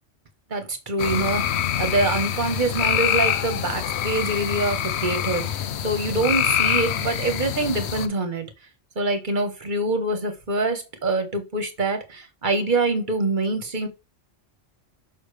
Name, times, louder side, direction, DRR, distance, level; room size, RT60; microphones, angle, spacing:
voice 1, 0.5-8.5 9.0-13.9, right 2 dB, 40° right, 1.3 m, -25 dB
sound 1, 1.0-8.1, left 9 dB, 65° left, 0.9 m, -25 dB
6.5 x 5.5 x 3.2 m
omnidirectional pair, 1.2 m